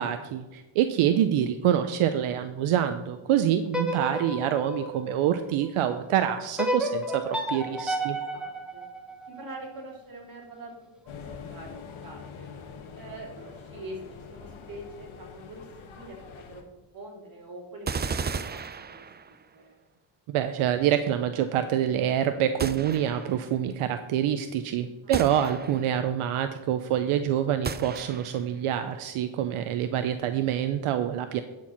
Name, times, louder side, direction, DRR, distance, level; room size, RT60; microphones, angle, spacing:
voice 1, 0.0-8.2 20.3-31.4, right 10 dB, 85° right, 9 dB, 0.7 m, -26 dB
sound 1, 3.7-5.9 6.6-9.7, equal, ahead, 1.8 m, -32 dB
voice 2, 8.0-8.9 9.3-11.7 12.0-12.5 12.9-19.8 25.0-25.3, right 1 dB, 45° right, -1 dB, 3.5 m, -45 dB
sound 2, 11.1-16.6, left 5 dB, 70° left, 1.4 m, -44 dB
sound 3, 17.9-19.5 22.6-23.5 25.1-26.0 27.6-28.5, right 5 dB, 20° right, 0.4 m, -34 dB
11.5 x 4.7 x 5.8 m, 1.1 s
cardioid pair, 90°, 50 cm